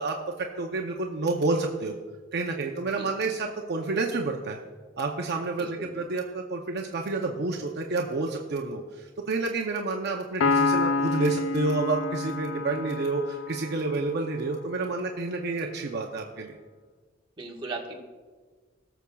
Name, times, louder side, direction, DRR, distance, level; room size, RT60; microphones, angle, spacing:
voice 1, 0.0-2.0 2.3-4.6 5.0-16.6, right 3 dB, 60° right, 2 dB, 0.6 m, -29 dB
voice 2, 5.6-5.9 17.4-18.0, right 2 dB, 25° right, -2 dB, 1.4 m, -37 dB
Piano, 10.4-14.0, left 3 dB, 80° left, 0.3 m, -28 dB
20.5 x 6.9 x 2.3 m, 1.4 s
head